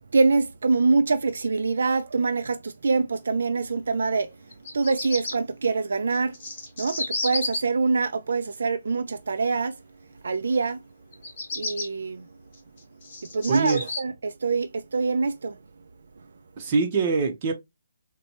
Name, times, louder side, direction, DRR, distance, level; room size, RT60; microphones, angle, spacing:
voice 1, 0.1-4.3 4.7-6.4 6.8-9.7 10.2-10.8 11.5-12.3 13.3-15.6, right 4 dB, 70° right, 0.4 m, -24 dB
Bird vocalization bird call bird song, 4.5-5.3 6.1-7.6 11.1-11.9 12.5-14.0, left 3 dB, 30° left, 1.4 m, -31 dB
voice 2, 13.5-13.8 16.6-17.5, right 4 dB, 25° right, 0.8 m, -23 dB
4.2 x 2.2 x 2.8 m
hypercardioid pair, 170°, 0 cm